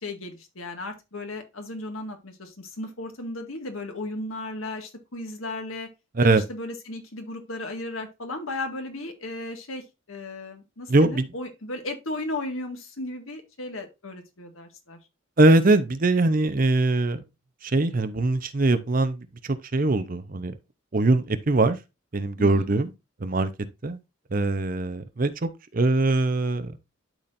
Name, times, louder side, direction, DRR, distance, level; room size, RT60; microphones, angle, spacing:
voice 1, 0.0-5.9 6.2-15.0 22.4-22.7, left 2 dB, 90° left, 1.8 m, -35 dB
voice 2, 10.9-11.3 15.4-17.2 17.6-19.3 19.7-20.5 20.9-21.8 22.1-22.9 23.2-23.5 23.8-24.0 24.3-26.8, right 2 dB, 40° right, 0.7 m, -22 dB
12.0 x 4.3 x 2.5 m
head